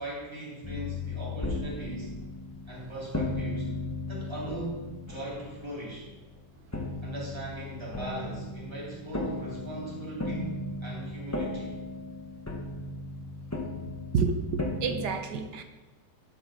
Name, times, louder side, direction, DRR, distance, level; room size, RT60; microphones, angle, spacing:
voice 1, 0.0-2.1 2.7-3.7 4.1-6.1 7.0-11.7, right 1 dB, 15° right, -6 dB, 3.0 m, -39 dB
sound 1, 0.6-6.3 6.7-15.1, left 2 dB, 10° left, 0.8 m, -36 dB
voice 2, 14.1-15.6, right 5 dB, 70° right, 7 dB, 1.4 m, -29 dB
11.0 x 7.7 x 3.7 m, 1.2 s
omnidirectional pair, 2.0 m